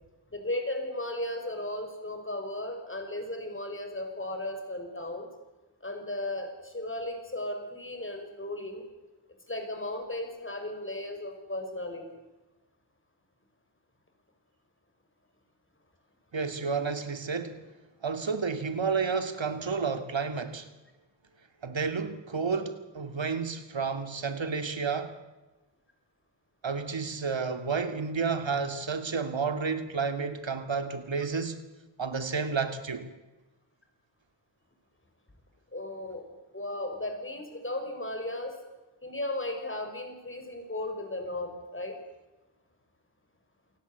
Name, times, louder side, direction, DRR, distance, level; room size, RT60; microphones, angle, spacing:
voice 1, 0.3-5.3 5.8-8.9 9.5-12.2 31.2-31.3 35.7-36.3 36.5-38.6 39.0-42.0, left 1 dB, 25° left, 6.1 m, -35 dB
voice 2, 16.3-17.6 18.0-20.7 21.6-25.1 26.6-31.6 32.0-33.1, right 5 dB, 75° right, 2.7 m, -31 dB
28.0 x 18.0 x 8.3 m
wide cardioid pair, 90°, 45 cm